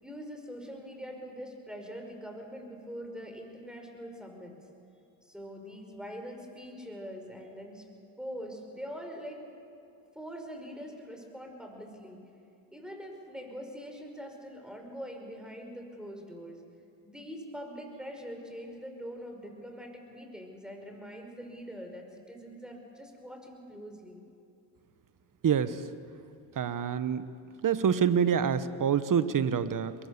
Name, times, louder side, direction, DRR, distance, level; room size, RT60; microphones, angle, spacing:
voice 1, 0.0-4.5 5.2-7.8 8.2-9.4 10.1-12.2 12.7-16.6 17.0-24.2, equal, ahead, 3 dB, 5.5 m, -43 dB
voice 2, 25.4-25.8 26.6-27.3 27.6-29.9, right 7 dB, 40° right, 13 dB, 1.3 m, -26 dB
23.5 x 22.5 x 6.9 m, 2.7 s
supercardioid pair, 70°, 48 cm